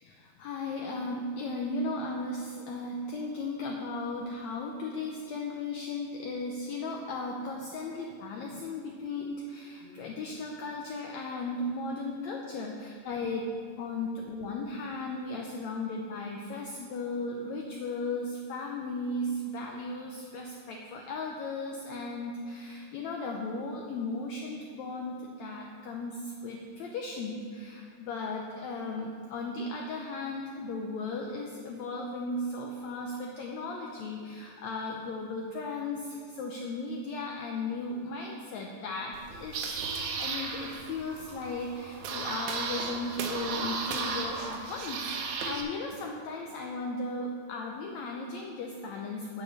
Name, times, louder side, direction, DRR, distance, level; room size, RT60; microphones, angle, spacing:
voice 1, 0.0-13.5 13.8-39.9 40.2-49.4, left 2 dB, 90° left, 0 dB, 1.6 m, -36 dB
sound 1, 39.1-45.6, right 4 dB, 85° right, 2.8 m, -35 dB
9.4 x 7.1 x 6.7 m, 2.2 s
omnidirectional pair, 4.2 m